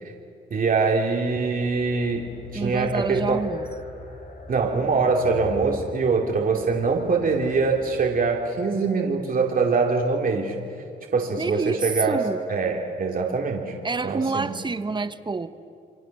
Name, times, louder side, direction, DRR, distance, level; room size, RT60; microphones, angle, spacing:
voice 1, 0.5-2.2 2.5-3.4 4.5-10.5 11.1-12.2 12.5-13.7 14.0-14.5, right 4 dB, 45° right, 1 dB, 2.7 m, -23 dB
sound 1, 1.4-8.7, left 2 dB, 45° left, 3.6 m, -42 dB
voice 2, 2.5-3.7 11.4-12.4 13.8-15.5, right 4 dB, 25° right, 12 dB, 1.1 m, -27 dB
29.0 x 24.0 x 6.6 m, 2.4 s
cardioid pair, 90°, 20 cm